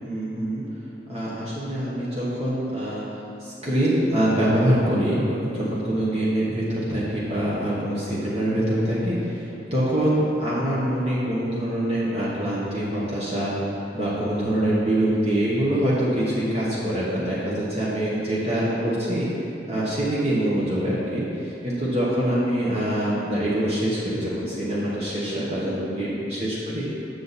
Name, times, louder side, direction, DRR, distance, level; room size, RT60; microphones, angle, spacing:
voice 1, 0.0-0.6 1.1-3.0 3.4-13.5 13.9-19.3 19.7-26.9, right 1 dB, 35° right, -8 dB, 1.2 m, -24 dB
7.7 x 6.6 x 4.1 m, 2.8 s
head